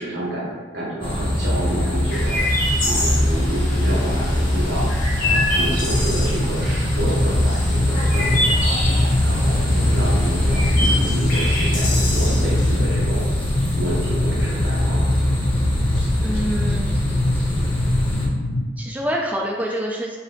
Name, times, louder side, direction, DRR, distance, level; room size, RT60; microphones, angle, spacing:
voice 1, 0.0-4.9 5.2-8.7 9.2-13.2 13.7-15.1, right 1 dB, 70° right, -5 dB, 1.2 m, -29 dB
sound 1, 1.0-18.3, left 1 dB, 30° left, 0.9 m, -22 dB
Chirp tweet, 2.1-12.8, left 1 dB, 50° left, 1.1 m, -27 dB
sound 2, 4.5-18.6, left 1 dB, 90° left, 0.4 m, -26 dB
voice 2, 16.2-16.9 18.8-20.2, equal, 10° right, -2 dB, 0.3 m, -26 dB
3.3 x 2.7 x 3.8 m, 1.4 s
head